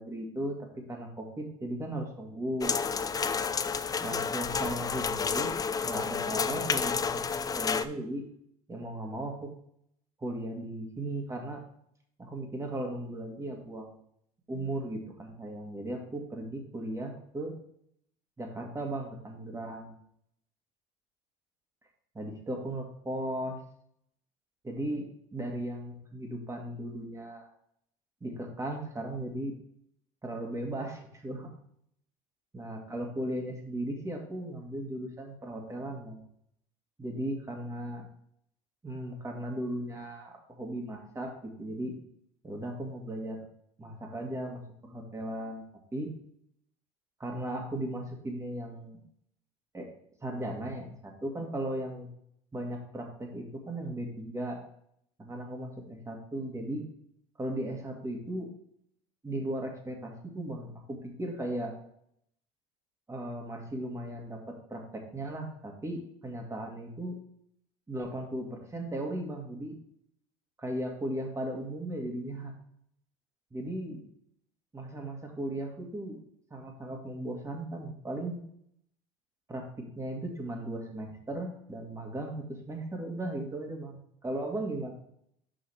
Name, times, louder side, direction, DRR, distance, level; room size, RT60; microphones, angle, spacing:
voice 1, 0.0-2.7 4.0-5.6 5.8-7.2 7.6-8.2 8.7-9.5 10.2-11.6 12.2-13.9 14.5-17.5 18.4-19.9 22.1-23.6 24.6-27.5 28.2-29.5 30.2-31.5 32.5-36.2 37.0-38.1 38.8-41.9 42.4-43.4 43.8-45.6 45.9-46.1 47.2-49.0 49.7-49.9 50.2-52.1 52.5-54.6 55.2-56.8 57.4-58.5 59.2-61.7 63.1-67.2 67.9-69.8 70.6-72.5 73.5-74.1 74.7-76.2 76.5-78.4 79.5-79.7 80.0-84.9, right 1 dB, 15° right, 2 dB, 1.9 m, -37 dB
sound 1, 2.6-7.8, left 5 dB, 20° left, 0.4 m, -30 dB
6.6 x 5.6 x 3.3 m, 0.71 s
hypercardioid pair, 85°, 18 cm